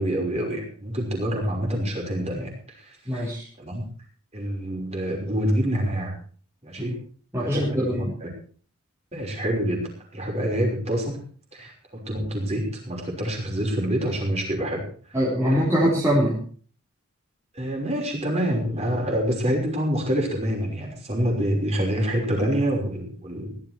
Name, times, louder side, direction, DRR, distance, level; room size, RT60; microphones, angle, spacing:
voice 1, 0.0-3.8 4.3-6.2 6.6-7.0 7.4-8.3 9.1-11.2 11.5-14.8 15.1-15.2 15.5-15.6 17.5-23.6, equal, 30° right, 0 dB, 5.8 m, -27 dB
voice 2, 3.1-3.5 6.8-6.9 7.3-8.1 15.1-16.4, equal, 10° right, -6 dB, 3.9 m, -23 dB
16.5 x 13.0 x 4.7 m, 0.43 s
head